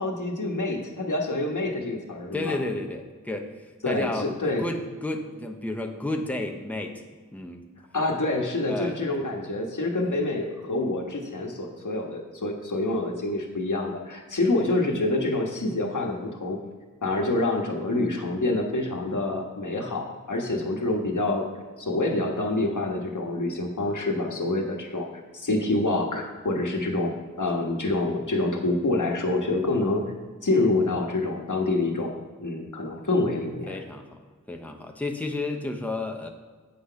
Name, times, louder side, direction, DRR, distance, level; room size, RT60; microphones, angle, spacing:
voice 1, 0.0-2.6 3.8-4.7 7.9-16.6 17.0-21.4 21.8-25.1 25.3-27.1 27.4-30.0 30.4-32.1 32.4-33.8, left 2 dB, 65° left, 1 dB, 1.5 m, -27 dB
voice 2, 2.3-3.5 3.9-4.3 4.6-7.0 7.3-7.6 8.7-9.0 10.0-10.2 20.5-20.7 33.7-34.2 34.5-36.3, left 2 dB, 5° left, 3 dB, 0.9 m, -32 dB
8.2 x 6.1 x 5.7 m, 1.4 s
wide cardioid pair, 55°, 32 cm